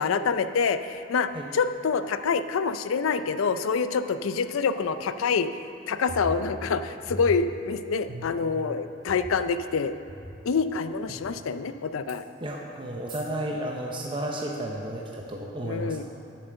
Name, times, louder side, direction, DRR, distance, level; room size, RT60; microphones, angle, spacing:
voice 1, 0.0-5.5 5.9-9.9 10.5-12.2 15.6-16.0, left 5 dB, 85° left, 11 dB, 0.4 m, -26 dB
sound 1, 6.1-6.8 7.1-7.7 8.1-8.6 9.1-9.2 10.1-10.2 11.1-11.2 12.1-12.2 13.1-13.2, right 1 dB, 75° right, 2.7 m, -38 dB
voice 2, 12.4-16.0, right 1 dB, 25° right, -1 dB, 0.7 m, -33 dB
7.9 x 7.4 x 6.7 m, 2.7 s
head